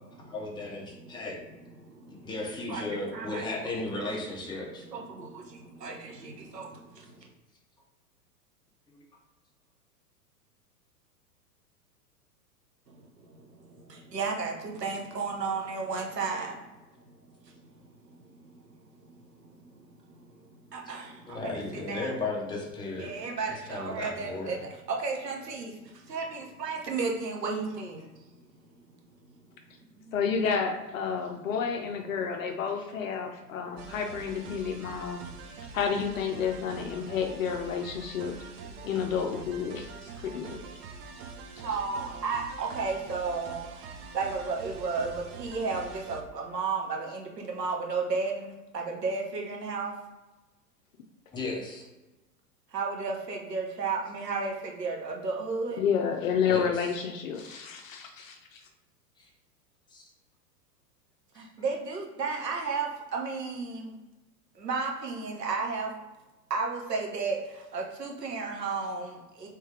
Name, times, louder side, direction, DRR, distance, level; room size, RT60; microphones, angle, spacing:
voice 1, 0.3-1.4 2.2-4.8 21.3-23.1 23.5-24.6 51.3-51.8 56.4-56.7 58.2-58.3 59.2-59.3 59.9-60.0 61.4-61.5, left 3 dB, 10° left, -3 dB, 0.7 m, -35 dB
voice 2, 0.9-1.2 1.8-2.3 2.7-3.5 4.0-4.2 4.7-7.3 12.9-16.6 17.1-17.2 17.4-22.1 23.0-28.3 28.9-29.0 29.9-30.1 34.9-35.0 35.5-35.6 41.6-43.9 44.1-49.9 52.7-55.8 57.5-57.6 61.3-64.0 64.5-65.9 66.5-69.5, right 4 dB, 80° right, 0 dB, 1.0 m, -34 dB
voice 3, 30.1-35.2 35.7-38.4 38.8-40.6 55.8-58.6, left 6 dB, 55° left, 3 dB, 0.6 m, -30 dB
sound 1, 33.8-46.2, right 4 dB, 40° right, 0.6 m, -44 dB
3.3 x 3.2 x 3.3 m, 1.1 s
figure-of-eight pair, 100°, 48 cm